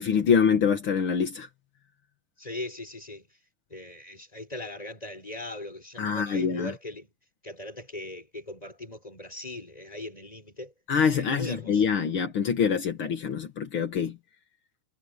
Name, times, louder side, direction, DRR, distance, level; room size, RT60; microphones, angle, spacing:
voice 1, 0.0-1.5 6.0-6.7 10.9-14.2, left 6 dB, 60° left, 1.4 m, -25 dB
voice 2, 2.4-3.3 3.7-7.1 7.4-10.7 11.1-11.8, left 2 dB, 10° left, 5.7 m, -39 dB
omnidirectional pair, 4.7 m